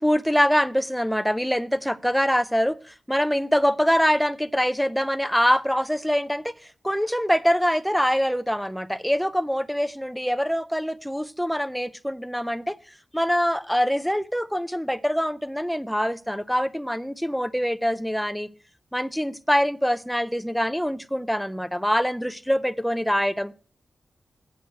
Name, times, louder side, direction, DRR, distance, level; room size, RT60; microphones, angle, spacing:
voice 1, 0.0-6.5 6.8-12.8 13.1-18.5 18.9-23.5, equal, ahead, 0.5 m, -24 dB
8.0 x 6.2 x 8.0 m
wide cardioid pair, 140°, 0 cm